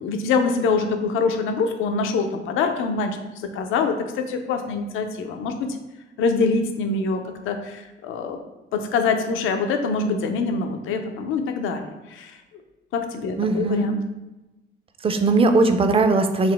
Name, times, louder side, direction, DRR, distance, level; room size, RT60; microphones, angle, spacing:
voice 1, 0.0-5.7 6.2-8.4 8.7-12.4 12.9-14.0, left 4 dB, 85° left, 6 dB, 0.5 m, -24 dB
voice 2, 13.4-13.9 15.0-16.5, right 3 dB, 30° right, 7 dB, 0.4 m, -19 dB
4.0 x 2.8 x 3.3 m, 1.0 s
cardioid pair, 90°, 20 cm